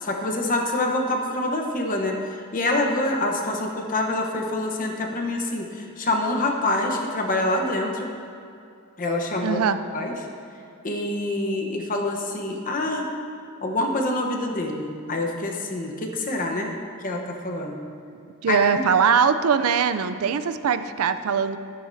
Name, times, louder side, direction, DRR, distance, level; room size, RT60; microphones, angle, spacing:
voice 1, 0.0-8.1 9.0-9.6 9.9-10.1 10.8-13.1 13.6-16.7 17.0-17.7 18.5-18.8, left 2 dB, 40° left, 2 dB, 0.9 m, -26 dB
voice 2, 9.4-9.8 18.4-21.6, right 6 dB, 80° right, 11 dB, 0.4 m, -21 dB
13.0 x 8.7 x 2.7 m, 2.5 s
head